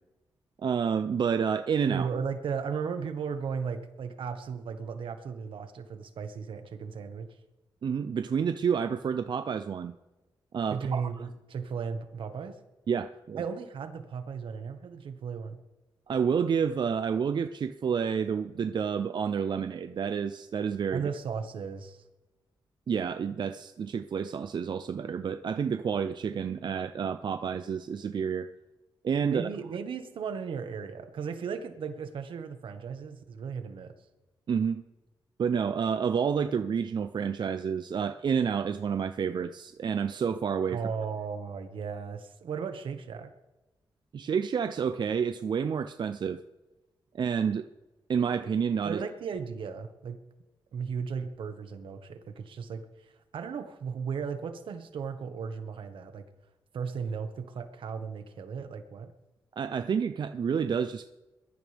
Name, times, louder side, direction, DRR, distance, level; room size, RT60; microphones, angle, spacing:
voice 1, 0.6-2.1 7.8-9.9 10.5-11.3 12.9-13.4 16.1-21.1 22.9-28.5 29.0-29.5 34.5-34.8 35.4-40.8 44.1-46.4 47.1-47.6 48.1-49.0 59.6-61.0, right 7 dB, 60° right, 9 dB, 0.6 m, -29 dB
voice 2, 1.8-7.3 10.7-12.6 13.4-15.6 20.9-22.0 29.2-33.9 40.7-43.3 48.8-50.2 50.7-52.9 53.3-56.3 56.7-59.1, right 6 dB, 85° right, 8 dB, 1.5 m, -36 dB
21.5 x 13.0 x 3.5 m, 1.1 s
cardioid pair, 85°, 8 cm